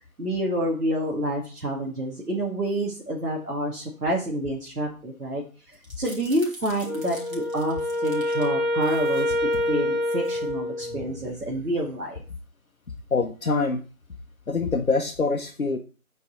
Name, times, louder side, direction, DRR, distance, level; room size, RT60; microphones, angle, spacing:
voice 1, 0.2-5.4 6.0-9.3 9.7-12.2, right 1 dB, 80° right, -3 dB, 2.2 m, -28 dB
sound 1, 5.7-8.5 8.8-9.7 10.1-10.4 10.8-12.4, right 1 dB, 60° right, 3.0 m, -46 dB
Wind instrument woodwind instrument, 6.8-11.2, left 1 dB, 30° left, 1.0 m, -26 dB
voice 2, 13.1-13.8 14.5-15.8, left 4 dB, 65° left, 2 dB, 0.9 m, -24 dB
8.3 x 4.8 x 4.2 m, 0.37 s
figure-of-eight pair, 170°, 45 cm